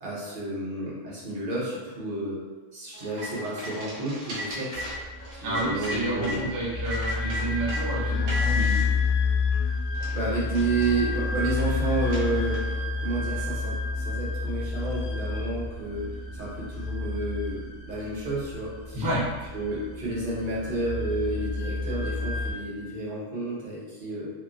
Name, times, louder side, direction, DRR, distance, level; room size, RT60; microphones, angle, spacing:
voice 1, 0.0-2.4 2.7-4.9 5.3-6.5 10.1-12.7 13.0-19.0 19.5-24.3, right 2 dB, 45° right, -6 dB, 0.9 m, -31 dB
sound 1, 2.9-6.4 6.9-7.8 8.3-8.9 9.5-9.6 10.0-12.8, left 1 dB, 90° right, 1.1 m, -36 dB
sound 2, 4.7-22.5, left 4 dB, 60° left, 0.7 m, -30 dB
voice 2, 5.4-8.8 18.9-19.3, right 1 dB, 20° right, -8 dB, 0.5 m, -30 dB
3.0 x 2.2 x 2.4 m, 1.3 s
omnidirectional pair, 1.4 m